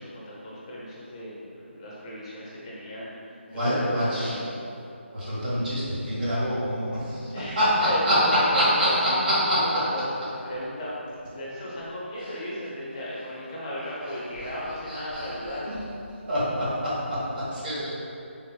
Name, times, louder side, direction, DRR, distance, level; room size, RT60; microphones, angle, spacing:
voice 1, 0.0-4.4 7.3-7.6 7.8-9.2 9.5-10.1 10.4-11.0 11.3-15.8, equal, 25° left, -7 dB, 0.6 m, -35 dB
voice 2, 3.5-4.4 5.1-8.2 8.5-9.6 14.9-15.0 16.3-17.9, equal, 45° right, -9 dB, 1.2 m, -25 dB
3.5 x 3.0 x 2.2 m, 2.6 s
figure-of-eight pair, 160°, 7 cm